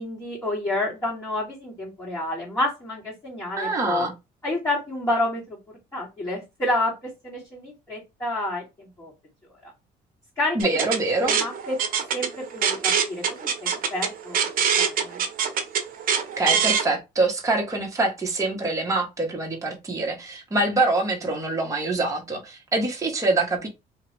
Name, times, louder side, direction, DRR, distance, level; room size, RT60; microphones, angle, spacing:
voice 1, 0.0-4.1 4.4-5.6 5.9-9.1 9.6-9.7 10.4-10.6 11.2-11.8 12.1-14.5 14.7-15.2, left 1 dB, 20° left, 1.9 m, -29 dB
voice 2, 3.6-4.1 10.5-11.4 16.4-23.7, right 2 dB, 20° right, 1.0 m, -25 dB
sound 1, 10.6-16.8, right 7 dB, 55° right, 0.7 m, -24 dB
2.9 x 2.4 x 3.1 m
cardioid pair, 110°, 17 cm